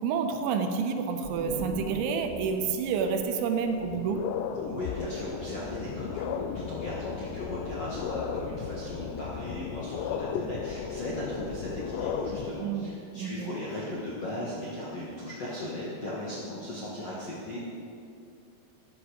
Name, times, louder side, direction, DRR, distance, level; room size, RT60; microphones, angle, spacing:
voice 1, 0.0-4.3 12.6-13.5, right 5 dB, 85° right, 5 dB, 3.1 m, -29 dB
sound 1, 1.2-4.8, right 1 dB, 45° right, 0.5 m, -42 dB
sound 2, 3.1-3.2 3.7-12.5, left 7 dB, 90° left, 2.5 m, -35 dB
voice 2, 4.6-17.6, left 1 dB, 60° left, -7 dB, 1.6 m, -37 dB
15.0 x 10.0 x 5.0 m, 2.6 s
omnidirectional pair, 5.6 m